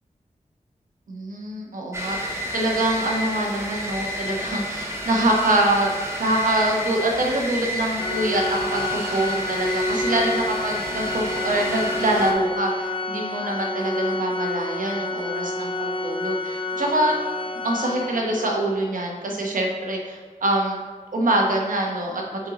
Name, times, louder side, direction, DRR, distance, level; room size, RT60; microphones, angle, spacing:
voice 1, 1.1-5.9 6.2-17.2 17.6-20.8 21.1-22.2, right 1 dB, 85° right, 0 dB, 1.1 m, -24 dB
sound 1, 1.9-12.3, equal, 20° right, 0.9 m, -31 dB
Organ, 8.0-18.7, left 2 dB, 35° left, 0.6 m, -29 dB
7.7 x 4.5 x 2.9 m, 1.5 s
wide cardioid pair, 95°, 13 cm